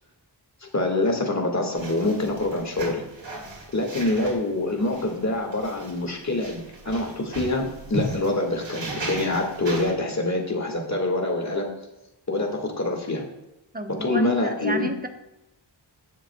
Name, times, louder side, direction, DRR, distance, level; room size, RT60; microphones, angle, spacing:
voice 1, 0.7-3.0 3.7-11.7 12.3-13.2 14.0-14.9, left 2 dB, 40° left, 2 dB, 1.9 m, -25 dB
sound 1, 1.8-9.9, right 2 dB, 85° right, 2.6 m, -36 dB
voice 2, 13.7-15.1, right 1 dB, 20° right, 5 dB, 1.0 m, -30 dB
16.0 x 6.5 x 2.3 m, 0.92 s
wide cardioid pair, 70°, 43 cm